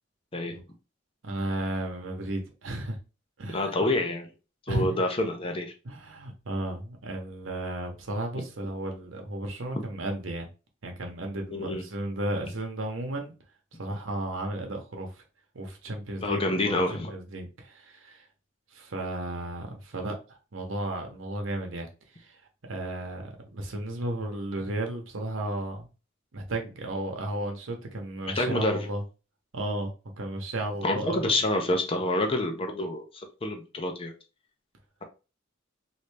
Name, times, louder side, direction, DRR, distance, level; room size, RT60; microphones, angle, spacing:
voice 1, 1.2-3.0 3.4-3.8 4.7-5.0 5.8-10.5 10.8-13.3 13.8-15.2 15.5-18.2 18.7-20.2 20.5-22.4 22.7-25.9 26.3-29.0 29.5-31.4, right 1 dB, 80° right, 0.9 m, -34 dB
voice 2, 3.5-4.3 4.7-5.7 9.7-9.8 11.5-11.8 16.2-17.1 28.4-28.8 30.8-34.1, left 1 dB, 30° left, 0.6 m, -27 dB
3.2 x 2.6 x 3.2 m
head